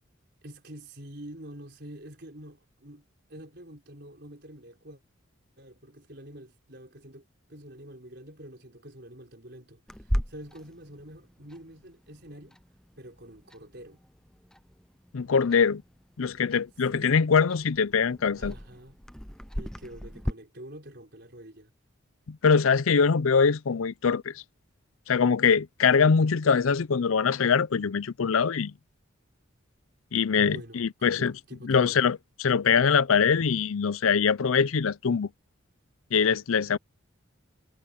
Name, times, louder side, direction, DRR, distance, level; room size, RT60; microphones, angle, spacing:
voice 1, 0.4-5.0 5.6-12.6 13.0-14.0 16.9-17.1 18.3-19.0 19.5-21.7 30.3-32.0, right 1 dB, 50° right, 4.7 m, -46 dB
Clock, 9.9-20.3, equal, 5° left, 0.6 m, -38 dB
voice 2, 15.1-15.8 16.2-18.5 22.3-24.4 25.1-28.7 30.1-31.3 31.7-35.3 36.1-36.8, left 6 dB, 80° left, 0.5 m, -23 dB
head